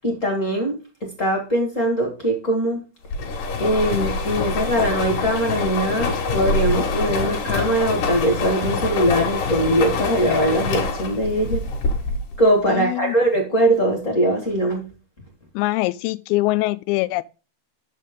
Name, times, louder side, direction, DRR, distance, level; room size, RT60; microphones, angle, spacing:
voice 1, 0.0-2.8 3.6-11.6 12.4-14.9, right 1 dB, 35° left, 1.3 m, -21 dB
sound 1, 3.1-12.4, left 3 dB, 65° left, 2.8 m, -25 dB
voice 2, 12.7-13.1 15.6-17.2, left 19 dB, 90° left, 2.5 m, -23 dB
7.5 x 6.4 x 3.6 m
omnidirectional pair, 4.3 m